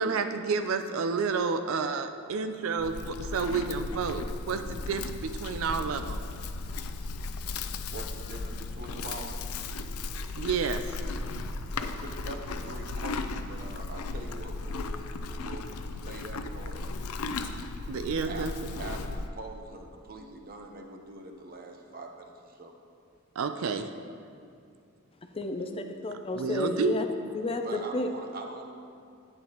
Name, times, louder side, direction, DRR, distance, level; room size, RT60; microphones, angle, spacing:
voice 1, 0.0-6.2 10.4-10.8 17.9-18.7 23.4-23.9 26.3-26.9, right 5 dB, 65° right, 8 dB, 0.4 m, -30 dB
Livestock farm animals working animals, 2.8-19.3, left 3 dB, 85° left, 0.5 m, -36 dB
voice 2, 7.9-9.3 11.7-15.1 15.4-15.7 15.9-16.9 18.3-22.7 27.6-28.6, right 2 dB, 40° right, 3 dB, 0.8 m, -43 dB
voice 3, 25.3-27.1 27.3-28.1, left 2 dB, 25° left, 6 dB, 0.4 m, -31 dB
11.0 x 8.7 x 3.0 m, 2.5 s
head